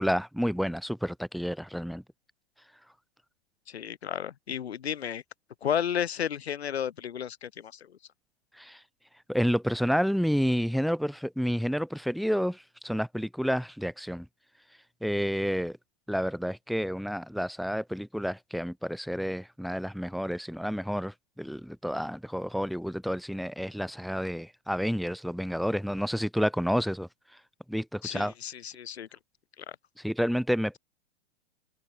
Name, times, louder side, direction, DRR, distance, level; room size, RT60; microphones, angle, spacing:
voice 1, 0.0-2.0 8.6-8.8 9.3-14.3 15.0-15.8 16.1-27.1 27.7-28.3 30.0-30.8, equal, ahead, 1.4 m, -30 dB
voice 2, 3.7-5.2 5.6-7.8 28.0-29.1, left 9 dB, 80° left, 2.2 m, -32 dB
open air
hypercardioid pair, 105°, 32 cm